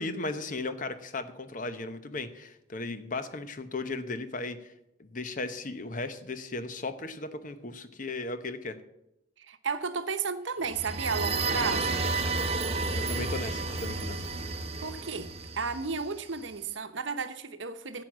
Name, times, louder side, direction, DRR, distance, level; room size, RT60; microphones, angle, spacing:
voice 1, 0.0-4.7 5.0-8.8 12.9-14.3, left 3 dB, 45° left, 10 dB, 0.9 m, -36 dB
voice 2, 9.4-12.1 14.8-18.0, right 5 dB, 85° right, 10 dB, 0.9 m, -33 dB
sound 1, 10.6-16.4, right 3 dB, 35° right, 0.8 m, -31 dB
9.6 x 7.8 x 7.3 m, 0.86 s
head